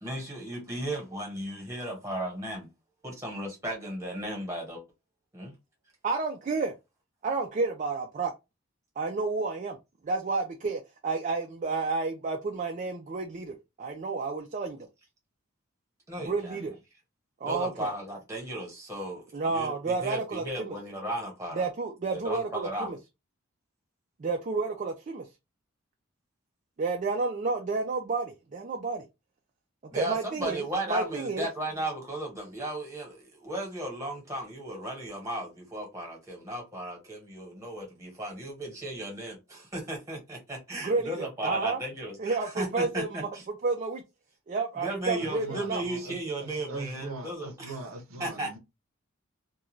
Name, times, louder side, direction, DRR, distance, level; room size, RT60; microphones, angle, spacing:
voice 1, 0.0-2.7 3.0-4.8 5.3-5.5 16.1-16.6 17.4-21.7 22.1-22.9 29.9-43.4 44.7-47.8 48.2-48.6, right 1 dB, 15° right, 1.1 m, -35 dB
voice 2, 6.0-6.7 7.2-8.3 9.0-9.8 10.0-14.9 16.2-16.7 17.4-17.9 19.3-20.8 21.5-23.0 24.2-25.3 26.8-29.0 29.9-31.5 40.8-41.8 42.2-43.3 43.6-44.0 44.5-45.8, right 3 dB, 35° right, 0.4 m, -31 dB
voice 3, 45.2-48.6, right 2 dB, 85° right, 0.7 m, -41 dB
2.4 x 2.2 x 3.1 m
head